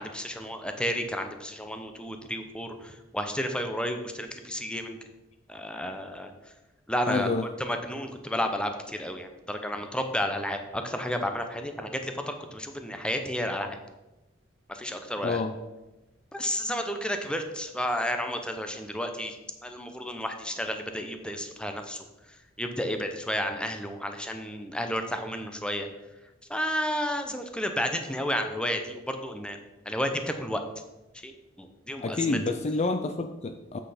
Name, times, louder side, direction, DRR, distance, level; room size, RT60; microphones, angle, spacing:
voice 1, 0.0-5.0 5.5-6.3 6.9-7.3 7.6-13.8 14.7-15.4 16.3-19.4 19.6-22.0 22.6-25.9 26.5-29.6 29.9-30.6 31.2-31.3 31.6-32.4, equal, 5° left, 6 dB, 0.7 m, -32 dB
voice 2, 7.1-7.4 15.2-15.5 32.0-33.8, left 3 dB, 35° left, 7 dB, 0.4 m, -28 dB
7.9 x 6.4 x 5.1 m, 1.0 s
head